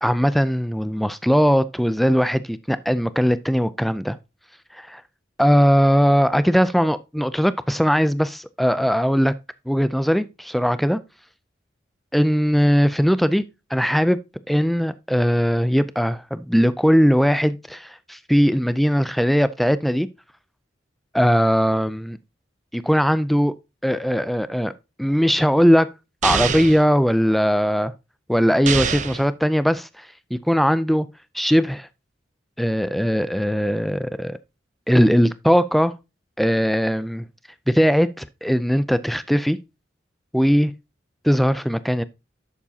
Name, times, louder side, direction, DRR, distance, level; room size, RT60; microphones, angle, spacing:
voice 1, 0.0-4.2 4.7-5.0 5.4-9.3 9.7-11.0 12.1-13.4 13.7-14.2 14.5-20.1 21.1-22.2 22.7-23.5 23.8-24.7 25.0-25.9 26.2-27.9 28.3-31.1 31.3-31.9 32.6-34.4 34.9-35.9 36.4-37.2 37.7-39.6 40.3-40.7 41.2-42.0, equal, ahead, 0.4 m, -19 dB
sound 1, 26.2-26.8 28.7-29.3, right 6 dB, 40° right, 0.7 m, -24 dB
11.0 x 7.2 x 2.8 m
head